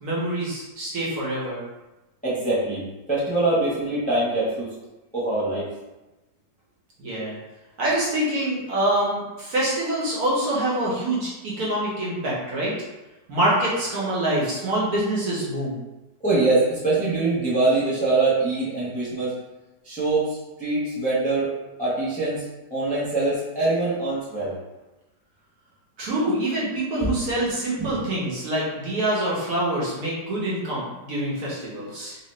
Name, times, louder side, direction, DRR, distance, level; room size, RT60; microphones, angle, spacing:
voice 1, 0.0-1.6 7.0-7.4 7.8-12.7 13.3-15.8 26.0-32.2, right 1 dB, 60° right, -6 dB, 1.4 m, -25 dB
voice 2, 2.2-2.8 3.1-4.7 5.1-5.7 16.2-19.3 19.8-21.5 21.8-24.6 27.0-27.2 27.8-28.0, right 2 dB, 5° left, -9 dB, 0.7 m, -23 dB
3.1 x 2.9 x 3.2 m, 1.1 s
omnidirectional pair, 1.9 m